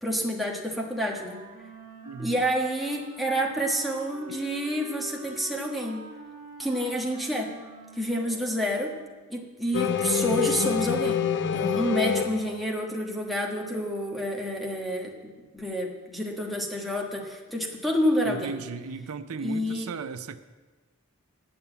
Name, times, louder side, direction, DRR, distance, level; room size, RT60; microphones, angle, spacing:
voice 1, 0.0-1.4 2.2-6.0 6.6-7.5 7.9-8.9 9.3-11.2 11.5-15.1 15.5-18.6 19.4-19.9, equal, ahead, -1 dB, 1.3 m, -28 dB
Wind instrument woodwind instrument, 1.0-9.3, right 3 dB, 40° right, 1.6 m, -46 dB
voice 2, 2.0-2.3 18.2-20.4, right 5 dB, 85° right, 11 dB, 0.5 m, -36 dB
sound 1, 9.7-12.8, left 6 dB, 55° left, 0.5 m, -27 dB
8.6 x 6.9 x 8.7 m, 1.3 s
head